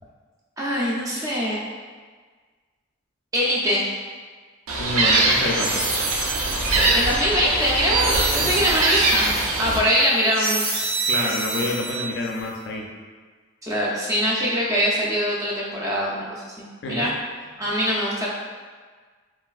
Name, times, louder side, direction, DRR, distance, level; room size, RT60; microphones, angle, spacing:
voice 1, 0.6-1.6 3.3-3.8 6.9-9.3 9.6-10.6 13.6-16.4 16.9-17.1 17.6-18.3, equal, 15° right, -5 dB, 0.4 m, -23 dB
Gull seagull, 4.7-9.8, right 2 dB, 85° right, 0.5 m, -22 dB
voice 2, 4.8-5.9 8.4-8.5 11.1-12.9 16.8-17.1, left 2 dB, 55° left, -1 dB, 0.3 m, -27 dB
sound 1, 5.1-12.4, right 3 dB, 70° right, 0.9 m, -28 dB
3.1 x 2.6 x 2.3 m, 1.5 s
head